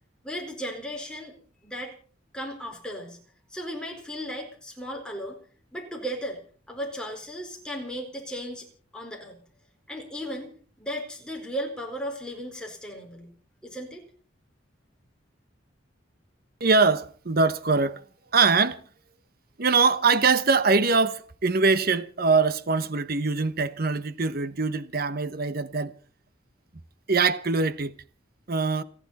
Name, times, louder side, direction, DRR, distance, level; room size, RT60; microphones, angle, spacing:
voice 1, 0.2-1.3 1.6-1.9 2.3-3.2 3.5-5.4 5.7-6.4 6.7-8.7 8.9-9.4 9.9-13.3 13.6-14.0, equal, 5° left, 4.7 m, -35 dB
voice 2, 16.6-18.0 18.3-18.8 19.6-26.0 27.1-27.9 28.5-28.8, right 4 dB, 55° right, 1.1 m, -23 dB
30.0 x 10.0 x 4.2 m
head